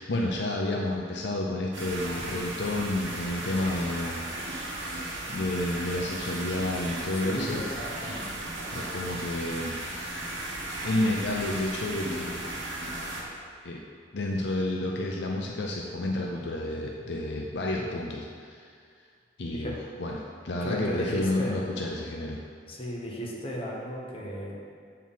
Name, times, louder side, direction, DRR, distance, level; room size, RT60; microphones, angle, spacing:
voice 1, 0.0-7.6 8.7-9.8 10.8-12.4 13.6-13.8 14.1-18.7 19.4-20.2 20.4-22.4, left 1 dB, 60° left, -1 dB, 0.6 m, -30 dB
sound 1, 1.7-13.2, right 1 dB, 80° right, 1.3 m, -36 dB
voice 2, 7.2-8.2 17.8-17.9 19.5-19.8 20.6-21.6 22.7-24.6, equal, 30° left, -3 dB, 1.1 m, -35 dB
7.2 x 4.6 x 5.5 m, 2.2 s
head